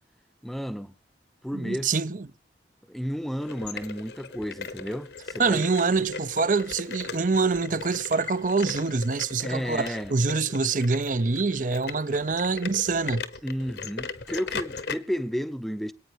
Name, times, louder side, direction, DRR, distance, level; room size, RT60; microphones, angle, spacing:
voice 1, 0.4-0.9 1.4-1.9 2.9-5.6 9.4-10.1 13.4-15.9, equal, ahead, 0.7 m, -32 dB
voice 2, 1.5-2.3 5.4-13.2, right 4 dB, 45° right, 0.6 m, -25 dB
sound 1, 3.4-14.9, left 5 dB, 70° left, 1.2 m, -38 dB
27.0 x 9.2 x 3.1 m
head